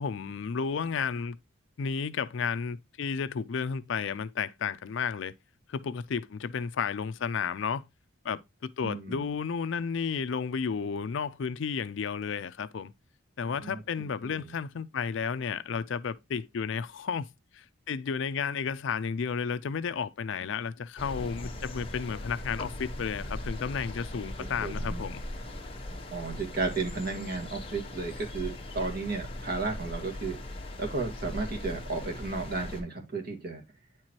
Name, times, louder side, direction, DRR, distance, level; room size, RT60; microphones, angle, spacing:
voice 1, 0.0-1.4 1.8-5.3 5.7-7.8 8.2-12.9 13.4-17.3 17.5-25.2, left 6 dB, 60° left, 0.4 m, -32 dB
voice 2, 8.8-9.3 13.6-14.5 24.2-24.3 24.6-25.0 26.1-30.4 30.8-33.6, right 3 dB, 45° right, 1.8 m, -34 dB
sound 1, 21.0-32.8, left 1 dB, 25° left, 1.1 m, -39 dB
9.5 x 4.5 x 2.9 m
head